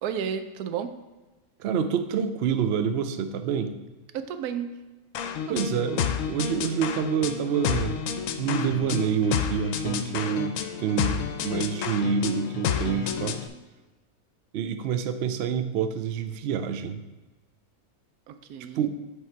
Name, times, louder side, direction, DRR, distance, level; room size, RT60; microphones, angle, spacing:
voice 1, 0.0-0.9 4.1-4.7 5.5-5.7 18.3-18.9, right 8 dB, 85° right, 9 dB, 1.1 m, -32 dB
voice 2, 1.6-3.7 5.5-8.0 8.4-13.4 14.5-17.0 18.7-18.9, right 7 dB, 65° right, 9 dB, 0.6 m, -27 dB
sound 1, 5.1-13.5, left 7 dB, 70° left, 0.9 m, -30 dB
8.4 x 3.6 x 4.5 m, 1.2 s
omnidirectional pair, 1.6 m